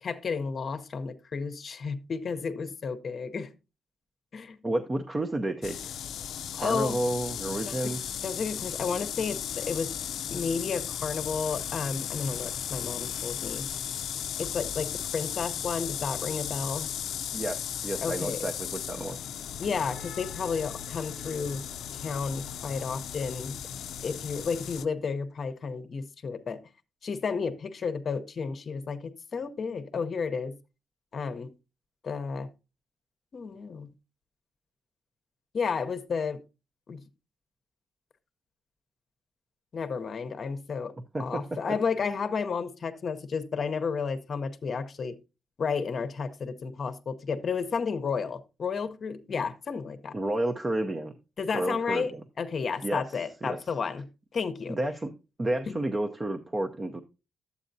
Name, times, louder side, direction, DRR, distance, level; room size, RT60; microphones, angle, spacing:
voice 1, 0.0-3.5 4.3-4.6 6.6-7.0 7.6-9.9 10.3-13.7 14.4-16.9 18.0-18.4 19.6-21.7 21.9-23.6 24.0-26.7 27.0-30.6 31.1-31.5 32.0-32.5 33.3-33.9 35.5-36.4 36.9-37.0 39.7-45.2 45.6-50.2 51.4-52.1 52.4-54.8 55.7-55.8, left 5 dB, 50° left, 0.7 m, -32 dB
voice 2, 4.6-5.9 6.5-8.0 17.3-19.2 41.1-41.4 50.1-51.1 51.5-52.2 52.8-53.0 53.4-53.5 54.7-55.1 55.4-57.0, right 1 dB, 25° right, 0.6 m, -31 dB
sound 1, 5.6-24.8, left 9 dB, 85° left, 0.4 m, -36 dB
11.5 x 8.2 x 2.6 m
cardioid pair, 105°, 0 cm